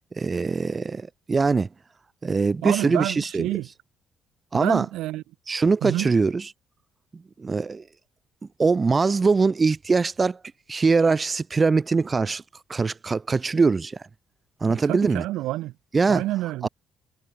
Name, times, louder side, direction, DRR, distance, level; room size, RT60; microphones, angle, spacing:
voice 1, 0.2-1.7 2.2-3.5 4.5-4.9 5.5-6.5 7.4-7.8 8.6-10.4 10.7-12.4 12.7-14.0 14.6-15.2 15.9-16.2 16.6-16.7, right 4 dB, 20° right, 1.0 m, -22 dB
voice 2, 2.6-3.7 4.5-5.2 5.8-6.1 14.7-15.7 16.1-16.7, right 16 dB, 90° right, 2.8 m, -28 dB
cardioid pair, 145°, 0 cm